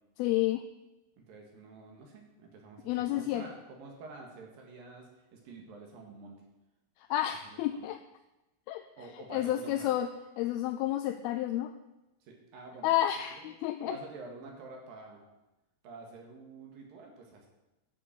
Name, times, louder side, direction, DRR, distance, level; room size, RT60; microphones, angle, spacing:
voice 1, 0.2-0.6 2.9-3.4 7.0-8.0 8.7-8.8 9.3-10.1 10.4-11.7 12.8-14.0, left 13 dB, 85° left, 6 dB, 2.4 m, -30 dB
voice 2, 1.2-6.4 7.4-7.8 9.0-9.9 12.2-12.9 13.4-13.5 13.8-15.2 15.8-17.5, right 3 dB, 65° right, 1 dB, 3.5 m, -48 dB
11.0 x 6.9 x 7.3 m, 0.98 s
omnidirectional pair, 4.5 m